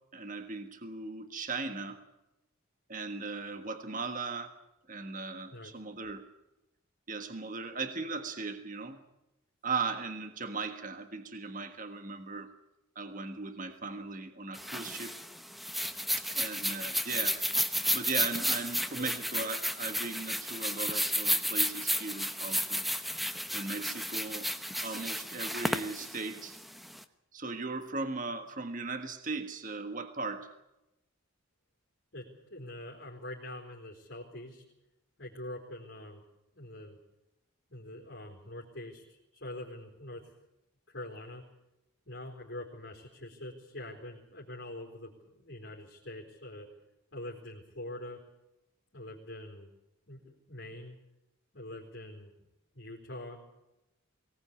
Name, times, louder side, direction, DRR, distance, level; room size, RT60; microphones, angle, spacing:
voice 1, 0.1-2.0 2.9-4.5 4.9-6.2 7.1-9.0 9.6-12.5 12.9-15.1 16.2-17.4 17.9-22.9 23.5-24.5 24.8-26.6 27.3-30.5, right 4 dB, 40° right, 8 dB, 1.5 m, -38 dB
sound 1, 14.5-27.0, equal, ahead, 1.0 m, -32 dB
voice 2, 32.1-34.6 35.2-36.2 36.5-37.0 37.7-40.3 40.9-41.4 42.1-46.7 47.1-48.2 48.9-49.7 50.1-51.0 51.5-52.3 52.7-53.4, left 1 dB, 55° left, -2 dB, 4.1 m, -44 dB
23.5 x 18.5 x 8.5 m, 0.93 s
head